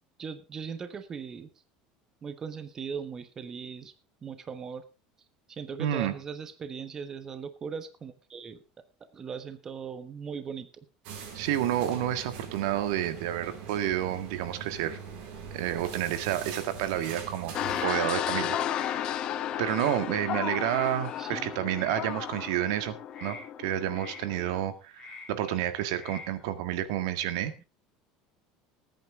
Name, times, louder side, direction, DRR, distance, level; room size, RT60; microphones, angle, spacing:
voice 1, 0.2-1.5 2.2-3.9 4.2-4.8 5.5-8.6 9.0-10.8 21.2-21.5, right 6 dB, 25° right, 10 dB, 1.2 m, -39 dB
voice 2, 5.8-6.1 11.3-15.0 15.5-17.5 17.8-19.0 19.6-22.9 23.2-27.6, right 12 dB, 80° right, 10 dB, 1.8 m, -30 dB
sound 1, 11.0-17.8, right 6 dB, 60° right, 4.8 m, -42 dB
sound 2, 16.9-17.2 17.5-18.2 18.6-19.3 19.6-20.0 20.6-21.3 21.7-22.0 22.5-22.8 23.1-23.4 23.9-24.5 24.9-25.6 25.9-26.3, left 3 dB, 25° left, 7.0 m, -47 dB
sound 3, 17.5-24.6, left 10 dB, 40° left, 0.9 m, -33 dB
20.0 x 9.2 x 3.6 m, 0.29 s
cardioid pair, 150°, 2 cm